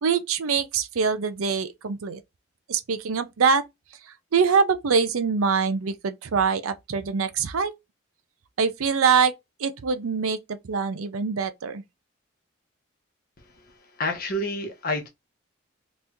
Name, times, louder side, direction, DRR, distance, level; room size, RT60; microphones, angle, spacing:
voice 1, 0.0-2.2 2.7-3.6 4.3-7.7 8.6-9.3 9.6-11.8, right 5 dB, 90° right, 0.5 m, -24 dB
voice 2, 13.4-15.1, left 1 dB, 45° left, 0.9 m, -30 dB
3.0 x 2.6 x 3.5 m
head